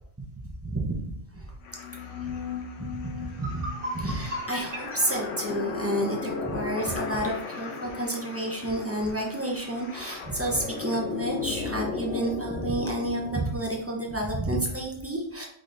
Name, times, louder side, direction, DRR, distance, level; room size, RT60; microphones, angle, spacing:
voice 1, 0.6-1.5 2.2-2.3 2.8-2.9 3.2-3.7 3.9-15.5, right 1 dB, 15° right, -2 dB, 0.6 m, -30 dB
sound 1, 1.6-13.3, left 5 dB, 80° left, 1.0 m, -36 dB
sound 2, 2.8-2.9 3.3-6.4, equal, 75° right, 1.9 m, -37 dB
5.0 x 4.1 x 2.5 m, 0.69 s
omnidirectional pair, 1.3 m